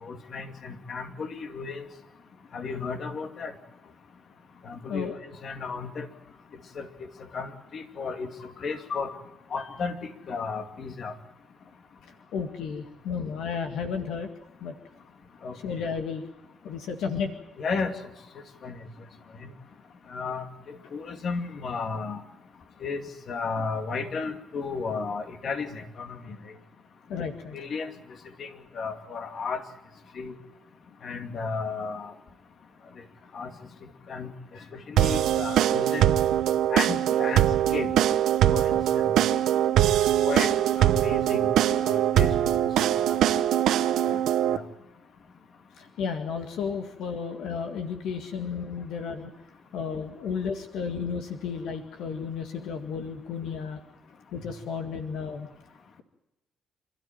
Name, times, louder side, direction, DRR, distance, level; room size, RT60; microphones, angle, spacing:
voice 1, 0.0-1.9 2.5-3.5 4.6-5.1 5.4-6.1 6.8-6.9 7.3-9.1 9.5-11.1 15.4-15.6 17.6-17.9 18.6-18.8 19.4-19.5 20.1-22.2 22.8-26.2 27.5-27.9 28.4-29.6 30.2-30.3 31.0-32.1 33.3-33.5 34.1-34.3 34.7-36.1 36.7-37.9 38.5-39.1 39.9-40.5 40.8-41.5 41.8-42.6 43.0-43.3 44.1-44.2 44.5-44.6, left 4 dB, 55° left, 7 dB, 2.5 m, -33 dB
voice 2, 4.8-5.2 12.0-14.3 14.6-14.8 15.6-16.2 16.6-17.3 20.8-20.9 27.1-27.5 34.5-34.7 45.8-49.3 49.7-53.8 54.3-55.5, left 6 dB, 85° left, 6 dB, 2.0 m, -33 dB
sound 1, 35.0-44.6, right 11 dB, 80° right, 0.9 m, -22 dB
27.5 x 13.0 x 9.1 m, 0.94 s
cardioid pair, 90°, 0 cm